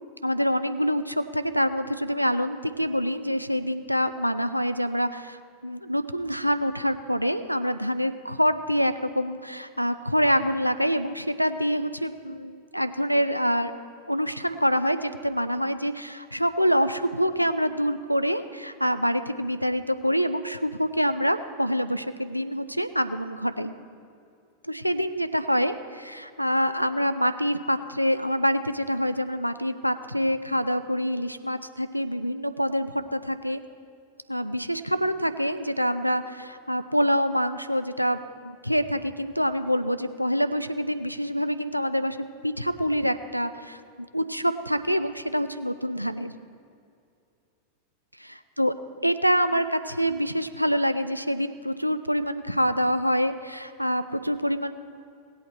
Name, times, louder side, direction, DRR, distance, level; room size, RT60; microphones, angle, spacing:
voice 1, 0.2-13.7 14.1-23.7 24.6-33.6 34.3-42.2 42.4-46.3 48.2-48.7 49.0-54.7, equal, 90° right, 10 dB, 0.5 m, -26 dB
18.0 x 8.3 x 4.4 m, 2.4 s
figure-of-eight pair, 90°, 0 cm